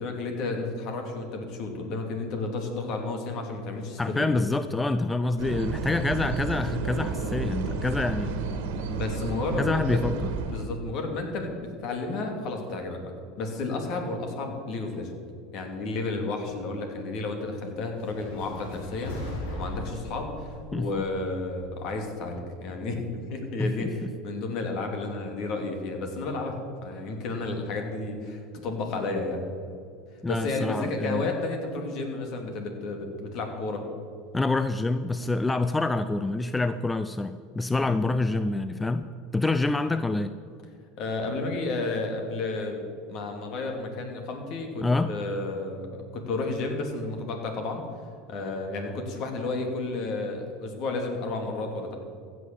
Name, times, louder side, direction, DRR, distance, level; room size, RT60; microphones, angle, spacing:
voice 1, 0.0-4.3 8.9-10.0 10.5-13.1 13.4-15.2 15.5-29.4 30.3-33.8 37.8-38.0 41.0-42.8 43.1-47.8 48.3-51.9, left 3 dB, 60° left, 4 dB, 2.6 m, -32 dB
voice 2, 4.0-8.3 9.6-10.3 20.7-20.9 23.6-23.8 30.2-31.2 34.3-39.0 39.3-40.3 44.8-45.2, left 2 dB, 15° left, 12 dB, 0.5 m, -26 dB
sound 1, 5.4-10.7, right 4 dB, 75° right, 1.7 m, -31 dB
sound 2, 17.9-22.2, left 1 dB, 75° left, 2.9 m, -39 dB
15.5 x 6.5 x 7.5 m, 2.3 s
hypercardioid pair, 85°, 0 cm